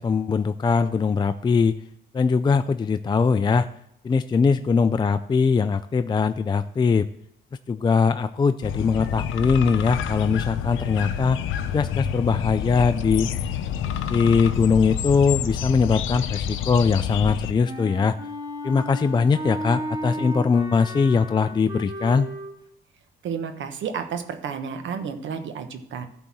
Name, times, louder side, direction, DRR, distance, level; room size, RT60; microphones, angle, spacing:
voice 1, 0.0-1.8 2.1-3.7 4.0-7.1 7.7-11.4 11.7-13.3 14.1-18.2 18.6-22.3, left 5 dB, 25° left, 10 dB, 0.3 m, -21 dB
sound 1, 8.6-17.5, left 8 dB, 85° left, 0.6 m, -28 dB
Wind instrument woodwind instrument, 17.7-22.5, equal, 20° right, 1.8 m, -34 dB
voice 2, 23.2-26.1, right 6 dB, 70° right, 8 dB, 1.1 m, -31 dB
11.5 x 4.0 x 7.3 m, 0.75 s
cardioid pair, 90°, 20 cm